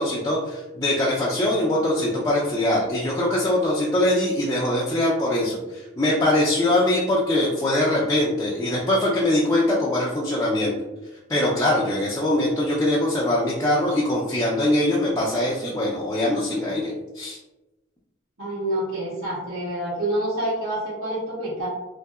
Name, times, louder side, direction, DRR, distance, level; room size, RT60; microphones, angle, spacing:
voice 1, 0.0-10.8 11.3-17.4, left 1 dB, 15° left, -6 dB, 0.4 m, -22 dB
voice 2, 18.4-21.7, right 1 dB, 80° right, -14 dB, 1.4 m, -27 dB
3.2 x 2.7 x 2.3 m, 1.0 s
head